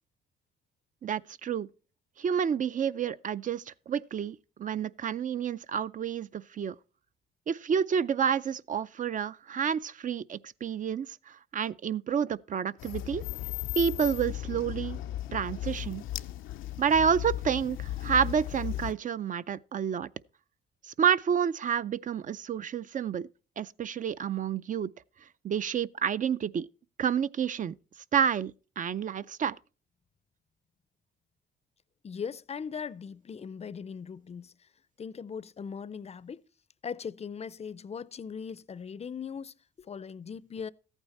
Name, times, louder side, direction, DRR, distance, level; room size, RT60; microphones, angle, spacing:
voice 1, 1.0-1.7 2.2-6.8 7.5-13.2 13.8-15.0 15.3-16.0 16.8-20.1 20.9-23.3 23.6-24.9 25.4-26.7 27.0-27.8 28.1-29.6, right 8 dB, 40° right, 0.5 m, -29 dB
sound 1, 12.8-18.9, left 13 dB, 80° left, 0.5 m, -36 dB
voice 2, 32.0-34.5 35.0-36.4 36.8-40.7, left 6 dB, 30° left, 0.5 m, -39 dB
14.0 x 9.0 x 4.2 m
cardioid pair, 90°, 20 cm